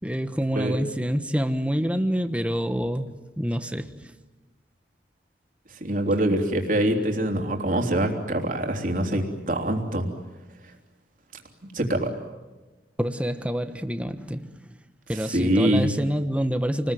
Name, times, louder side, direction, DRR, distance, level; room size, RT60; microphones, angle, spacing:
voice 1, 0.0-4.1 6.3-6.4 13.0-14.8 15.1-16.9, equal, 5° right, 1.2 m, -27 dB
voice 2, 5.8-10.1 11.7-12.1 15.3-15.9, right 1 dB, 50° right, 3.4 m, -24 dB
28.5 x 20.5 x 9.2 m
head